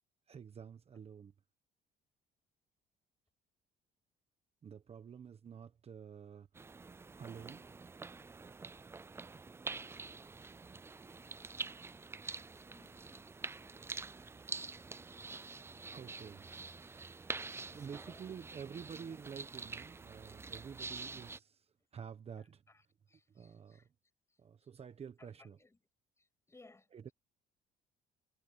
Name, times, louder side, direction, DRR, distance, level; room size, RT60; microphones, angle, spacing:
voice 1, 0.3-1.3 4.6-6.5 7.2-7.6 15.9-16.5 17.7-22.6 23.3-23.9 24.4-25.6 26.9-27.1, right 7 dB, 35° right, 1.3 m, -49 dB
sound 1, 6.5-21.4, right 4 dB, 15° right, 0.4 m, -46 dB
voice 2, 12.5-14.9 17.7-18.3 22.4-23.9 24.3-24.7 25.2-25.8 26.2-26.9, left 3 dB, 15° left, 7.5 m, -64 dB
cardioid pair, 110°, 17 cm